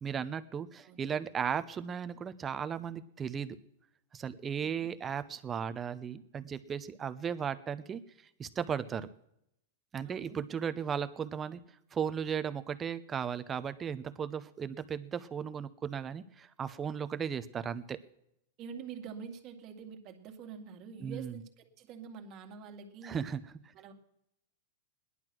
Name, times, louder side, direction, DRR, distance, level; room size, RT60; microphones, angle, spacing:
voice 1, 0.0-3.6 4.1-8.0 8.4-9.1 9.9-11.6 11.9-18.0 21.0-21.4 23.0-23.4, right 7 dB, 20° right, 12 dB, 0.8 m, -36 dB
voice 2, 4.5-4.9 10.0-10.4 17.1-17.2 18.6-23.2 23.7-23.9, right 6 dB, 35° right, 5 dB, 1.9 m, -46 dB
18.0 x 11.0 x 6.1 m, 0.78 s
supercardioid pair, 150°, 0 cm